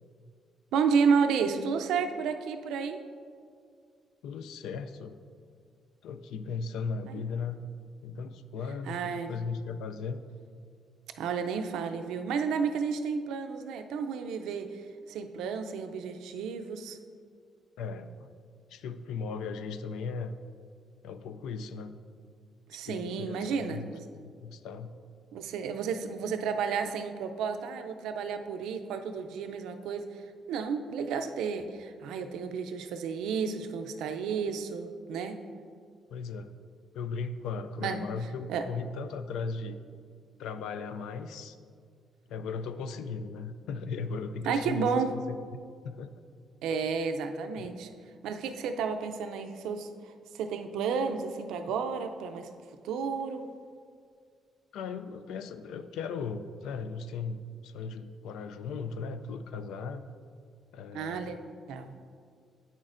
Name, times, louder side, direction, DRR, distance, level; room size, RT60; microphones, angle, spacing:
voice 1, 0.7-3.0 7.1-7.2 8.9-9.3 11.2-14.8 15.1-17.0 22.7-24.1 25.3-30.0 30.5-35.4 37.8-38.0 38.5-38.6 44.4-45.1 46.6-47.9 48.2-49.9 50.3-52.5 52.8-53.5 60.9-61.4 61.7-61.9, right 6 dB, 85° right, 7 dB, 0.4 m, -31 dB
voice 2, 4.2-5.2 6.0-7.6 8.0-10.3 17.8-18.3 18.7-20.4 21.0-22.0 22.9-24.0 24.2-24.9 36.1-36.6 36.9-39.8 40.4-41.6 42.3-45.4 45.8-46.1 47.6-47.7 54.7-60.0 60.7-61.4, left 5 dB, 85° left, 11 dB, 0.3 m, -37 dB
8.5 x 6.2 x 2.5 m, 2.1 s
cardioid pair, 90°, 0 cm